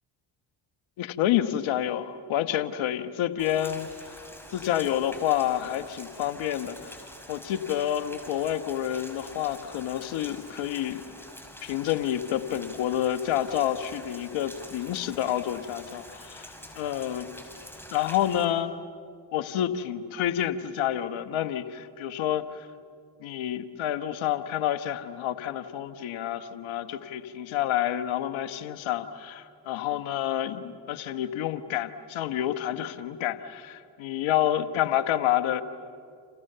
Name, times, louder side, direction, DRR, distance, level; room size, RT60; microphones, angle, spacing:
voice 1, 1.0-3.9 4.5-7.0 7.3-11.0 11.6-16.5 16.8-17.3 17.9-18.7 19.3-22.7 23.2-35.6, left 11 dB, 75° left, 8 dB, 1.4 m, -28 dB
Rain, 3.4-18.4, left 1 dB, 5° left, 6.2 m, -46 dB
29.5 x 28.5 x 6.9 m, 2.3 s
hypercardioid pair, 50°, 47 cm